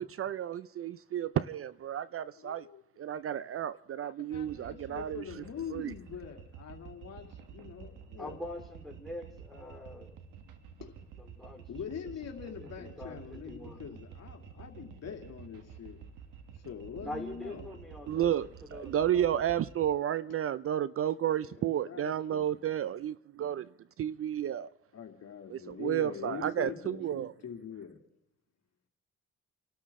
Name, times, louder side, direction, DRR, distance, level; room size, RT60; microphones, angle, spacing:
voice 1, 0.0-2.7 3.0-5.4 5.7-5.9 18.1-23.7 24.0-24.7 25.5-27.3, right 10 dB, 50° right, 0.5 m, -32 dB
voice 2, 2.4-2.8 4.0-8.4 10.8-10.9 11.7-16.0 16.6-17.7 21.8-22.7 24.9-28.0, left 7 dB, 60° left, 2.6 m, -44 dB
sound 1, 4.3-19.9, right 7 dB, 85° right, 1.4 m, -50 dB
voice 3, 8.2-10.2 11.2-11.7 12.6-13.8 17.0-18.3 18.7-19.5 21.3-21.6, left 1 dB, ahead, 3.8 m, -44 dB
30.0 x 13.0 x 3.7 m
cardioid pair, 90°, 30 cm